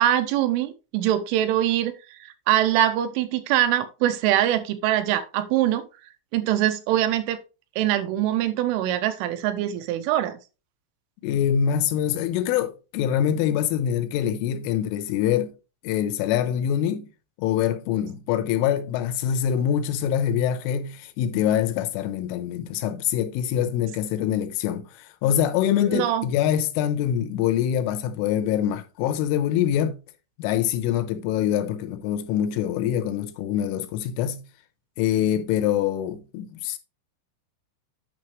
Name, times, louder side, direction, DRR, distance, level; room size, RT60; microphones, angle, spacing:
voice 1, 0.0-5.9 6.3-7.4 7.8-10.4 25.9-26.3, right 12 dB, 80° right, 3.0 m, -23 dB
voice 2, 11.2-15.5 15.8-17.1 17.4-30.0 30.4-34.4 35.0-36.8, left 10 dB, 80° left, 3.2 m, -24 dB
9.4 x 6.0 x 3.0 m
omnidirectional pair, 5.8 m